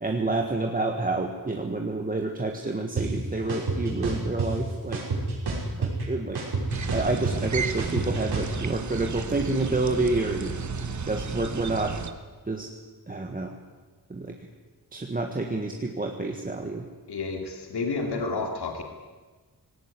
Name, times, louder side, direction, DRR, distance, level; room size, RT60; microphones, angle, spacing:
voice 1, 0.0-5.0 5.8-6.4 6.9-10.5 11.0-12.0 12.5-12.7 13.1-13.5 14.1-14.5 14.9-16.8, right 2 dB, 20° right, 3 dB, 1.5 m, -28 dB
sound 1, 3.0-3.1 3.5-4.5 4.9-6.0 6.4-8.5, right 4 dB, 85° right, 6.0 m, -28 dB
sound 2, 6.7-12.1, right 5 dB, 50° right, 1.3 m, -33 dB
voice 2, 17.1-18.8, left 3 dB, 90° left, 3 dB, 2.7 m, -30 dB
20.0 x 18.0 x 9.9 m, 1.4 s
wide cardioid pair, 180°, 38 cm